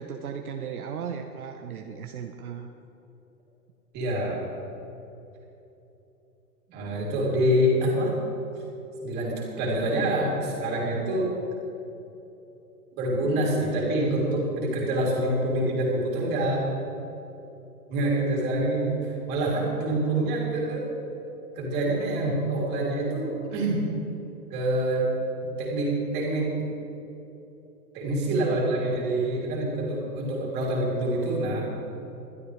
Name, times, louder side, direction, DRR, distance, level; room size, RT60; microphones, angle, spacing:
voice 1, 0.0-2.7, right 7 dB, 60° right, 4 dB, 1.0 m, -36 dB
voice 2, 3.9-4.4 6.7-8.1 9.0-11.3 13.0-16.7 17.9-20.9 21.6-23.9 24.5-25.1 25.4-26.6 27.9-31.7, right 1 dB, 20° right, -3 dB, 3.0 m, -26 dB
21.0 x 12.0 x 3.3 m, 3.0 s
hypercardioid pair, 160°, 48 cm